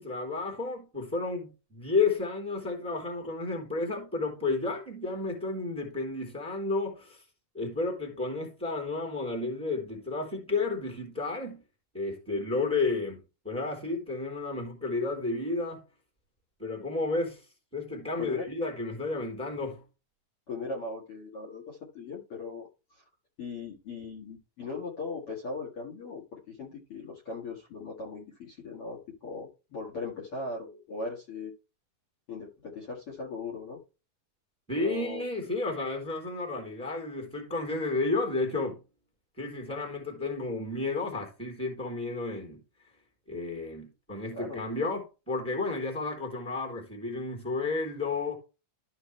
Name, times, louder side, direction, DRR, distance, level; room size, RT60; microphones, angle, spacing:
voice 1, 0.0-7.2 7.5-11.6 11.9-15.8 16.6-17.4 17.7-19.8 34.7-38.8 39.4-42.6 43.3-48.4, left 3 dB, ahead, 3.0 m, -32 dB
voice 2, 20.5-23.0 23.4-31.5 32.3-33.8 34.8-35.2 44.3-44.6, left 3 dB, 45° left, 2.5 m, -39 dB
13.5 x 5.0 x 3.3 m
omnidirectional pair, 3.9 m